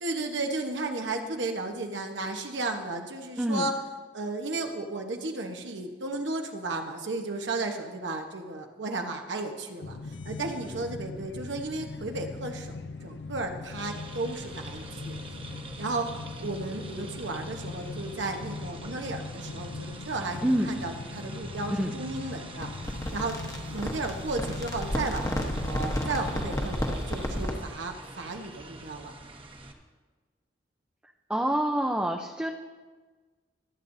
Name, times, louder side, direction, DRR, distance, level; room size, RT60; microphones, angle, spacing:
voice 1, 0.0-3.7 4.1-15.4 15.8-22.7 23.1-23.4 23.7-29.2, right 2 dB, 90° right, 4 dB, 1.2 m, -34 dB
voice 2, 3.4-3.7 20.4-20.8 21.7-21.9 31.3-32.5, right 1 dB, 5° right, 2 dB, 0.5 m, -27 dB
sound 1, 9.8-26.8, left 3 dB, 70° left, 0.5 m, -40 dB
sound 2, 13.8-29.7, right 2 dB, 30° right, 1.0 m, -45 dB
sound 3, 22.6-27.7, equal, 20° left, 1.0 m, -32 dB
23.5 x 8.7 x 2.7 m, 1.4 s
head